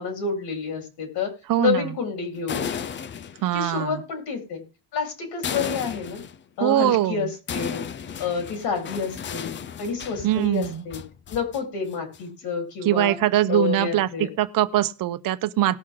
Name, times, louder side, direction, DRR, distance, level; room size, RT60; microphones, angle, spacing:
voice 1, 0.0-2.7 3.5-4.6 4.9-6.2 6.6-7.9 8.2-11.0 11.3-13.2 13.5-14.3, left 5 dB, 70° left, 4.2 m, -29 dB
voice 2, 1.5-1.9 3.4-4.0 6.6-7.3 10.2-10.8 12.8-15.8, right 13 dB, 55° right, 0.8 m, -22 dB
sound 1, 2.3-3.6 5.4-6.4 7.5-11.6 11.9-12.4, left 7 dB, 30° left, 0.4 m, -34 dB
18.5 x 6.3 x 3.8 m
cardioid pair, 135°, 41 cm